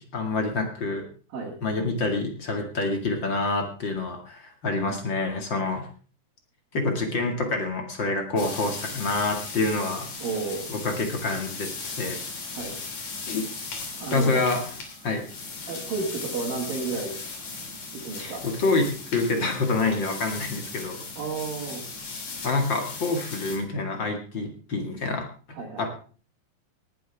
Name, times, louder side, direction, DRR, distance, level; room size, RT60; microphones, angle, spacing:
voice 1, 0.1-1.1 1.6-5.9 6.7-10.1 10.7-12.2 13.3-13.5 14.1-14.6 15.0-15.2 18.2-21.0 22.4-25.3 25.8-26.0, left 3 dB, 40° left, 4 dB, 2.3 m, -27 dB
sound 1, 8.4-23.6, left 4 dB, 55° left, 4.2 m, -37 dB
voice 2, 10.2-10.7 12.5-12.7 14.0-14.4 15.7-17.1 18.0-18.4 21.2-21.8 25.5-25.9, right 4 dB, 75° right, -4 dB, 4.0 m, -31 dB
18.5 x 11.5 x 3.5 m, 0.39 s
omnidirectional pair, 4.1 m